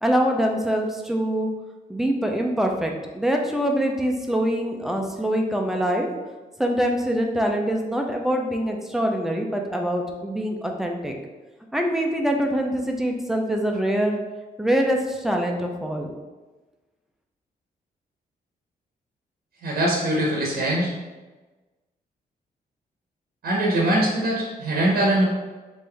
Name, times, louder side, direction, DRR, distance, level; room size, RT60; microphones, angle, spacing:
voice 1, 0.0-1.5 1.9-6.1 6.6-11.1 11.7-14.2 14.6-16.1, equal, ahead, 2 dB, 0.5 m, -24 dB
voice 2, 19.6-20.9 23.4-25.2, right 1 dB, 75° right, -3 dB, 0.8 m, -22 dB
3.6 x 2.6 x 3.3 m, 1.2 s
cardioid pair, 110°, 17 cm